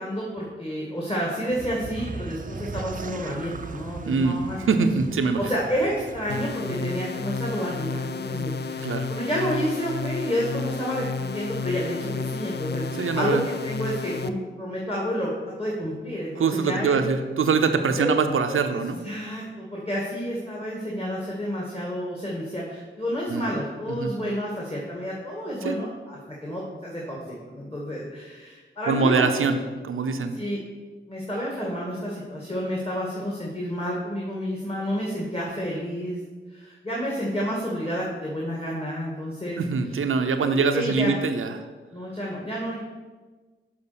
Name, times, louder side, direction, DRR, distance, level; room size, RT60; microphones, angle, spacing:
voice 1, 0.0-4.9 5.2-15.3 15.6-17.0 18.0-18.1 18.7-18.8 19.0-29.2 30.3-30.6 31.1-36.2 36.5-39.6 40.7-41.2 41.9-42.8, equal, 30° left, -4 dB, 2.1 m, -30 dB
sound 1, 1.5-6.6, right 4 dB, 40° right, 0.5 m, -38 dB
voice 2, 4.1-4.4 4.7-5.4 6.8-6.9 8.8-9.1 12.9-13.4 16.4-19.0 23.3-23.5 23.9-24.1 25.6-25.8 28.9-29.6 29.8-30.3 39.6-41.6, right 5 dB, 85° right, 7 dB, 0.7 m, -23 dB
sound 2, 6.3-14.3, left 4 dB, 55° left, 0.5 m, -31 dB
6.9 x 5.2 x 6.9 m, 1.3 s
cardioid pair, 55°, 21 cm